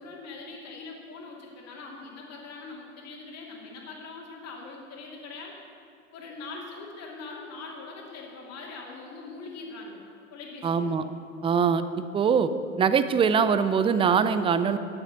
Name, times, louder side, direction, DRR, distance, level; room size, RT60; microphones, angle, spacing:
voice 1, 0.0-5.5 6.1-10.0 10.3-10.9, left 3 dB, 40° left, -1 dB, 2.7 m, -42 dB
voice 2, 10.6-11.0 11.4-12.5 12.8-14.8, right 6 dB, 15° right, 12 dB, 0.4 m, -23 dB
12.0 x 8.2 x 6.4 m, 2.6 s
hypercardioid pair, 85°, 39 cm